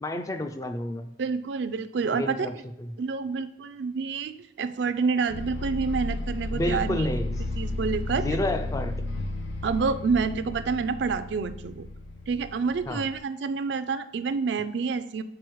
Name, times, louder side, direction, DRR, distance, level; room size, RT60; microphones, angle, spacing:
voice 1, 0.0-1.1 2.1-2.5 2.8-2.9 6.5-7.4 8.1-8.9 12.9-13.0, left 1 dB, 20° left, 7 dB, 0.3 m, -30 dB
voice 2, 1.2-2.6 3.0-7.2 7.6-8.3 9.6-11.9 12.3-15.2, right 5 dB, 70° right, 12 dB, 0.4 m, -28 dB
sound 1, 5.3-13.2, left 2 dB, 90° left, 0.7 m, -33 dB
4.8 x 4.2 x 4.6 m, 0.80 s
head